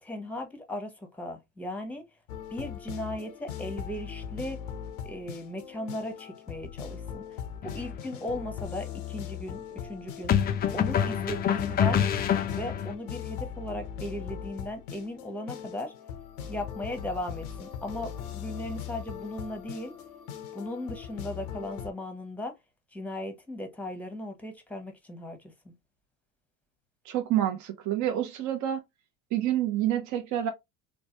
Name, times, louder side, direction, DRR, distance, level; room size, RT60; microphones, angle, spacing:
voice 1, 0.0-2.0 2.5-4.6 5.0-7.2 7.6-10.3 10.7-12.1 12.5-15.9 16.5-19.9 20.5-22.5 22.9-25.4 25.6-25.7, left 1 dB, 5° left, 0.8 m, -37 dB
sound 1, 2.3-21.9, left 9 dB, 90° left, 0.6 m, -40 dB
sound 2, 7.6-7.9 10.3-12.9, left 9 dB, 25° left, 0.3 m, -26 dB
voice 2, 27.1-28.8 29.3-30.5, right 11 dB, 45° right, 0.6 m, -28 dB
3.1 x 2.2 x 2.7 m
hypercardioid pair, 80°, 42 cm